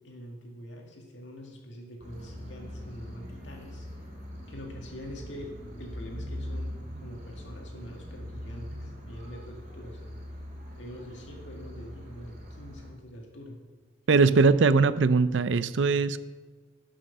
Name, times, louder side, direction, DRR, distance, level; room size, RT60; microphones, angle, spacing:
voice 1, 0.0-3.9 4.5-5.5 5.8-10.2 10.8-13.6, equal, 75° left, 1 dB, 2.1 m, -44 dB
sound 1, 2.0-12.9, equal, 45° right, 2.7 m, -41 dB
voice 2, 14.1-16.2, right 4 dB, 75° right, 15 dB, 0.5 m, -21 dB
11.0 x 6.3 x 6.7 m, 1.3 s
head